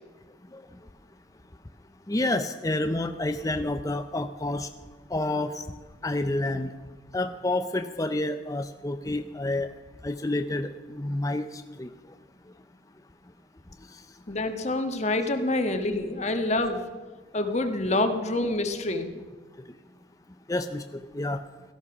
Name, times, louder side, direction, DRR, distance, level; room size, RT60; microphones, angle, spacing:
voice 1, 2.1-4.7 5.1-5.6 6.0-6.7 7.1-9.7 10.0-11.5 11.8-11.9 20.5-21.4, left 2 dB, 20° left, 7 dB, 0.6 m, -29 dB
voice 2, 14.3-16.8 17.3-19.1, left 2 dB, 40° left, 7 dB, 1.4 m, -27 dB
17.5 x 13.5 x 6.1 m, 1.4 s
head